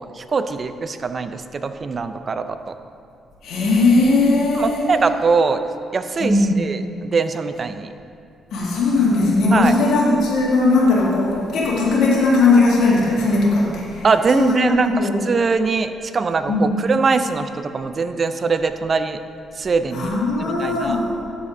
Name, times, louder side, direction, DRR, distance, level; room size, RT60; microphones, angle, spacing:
voice 1, 0.0-2.7 4.5-5.6 5.9-7.9 9.5-9.7 14.0-19.2 19.6-21.0, right 4 dB, 40° right, 10 dB, 0.5 m, -22 dB
voice 2, 3.4-4.9 6.2-6.6 8.5-14.1 14.3-15.2 16.5-16.8 19.9-21.1, left 3 dB, 75° left, -5 dB, 2.0 m, -18 dB
12.0 x 4.3 x 5.0 m, 2.5 s
cardioid pair, 90°, 0 cm